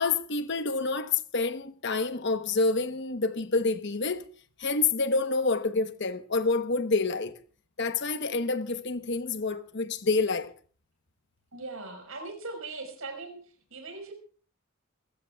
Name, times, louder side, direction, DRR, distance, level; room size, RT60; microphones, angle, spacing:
voice 1, 0.0-4.3 4.6-7.4 7.8-10.5, left 3 dB, 55° left, 1.0 m, -28 dB
voice 2, 11.5-13.4 13.7-14.1, right 3 dB, 75° right, 5.2 m, -39 dB
27.0 x 15.0 x 2.4 m
head